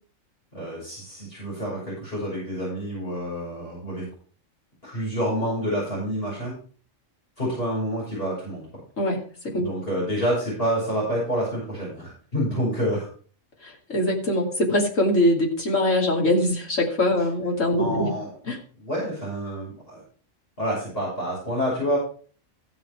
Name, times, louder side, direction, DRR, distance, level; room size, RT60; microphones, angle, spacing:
voice 1, 0.5-4.1 4.8-6.5 7.4-8.7 9.6-13.1 17.8-18.4 18.8-20.0 20.6-22.0, equal, 45° left, -7 dB, 6.8 m, -28 dB
voice 2, 13.9-18.1 18.5-18.6, left 1 dB, 70° left, -1 dB, 3.0 m, -22 dB
15.5 x 5.9 x 4.6 m, 0.42 s
omnidirectional pair, 1.4 m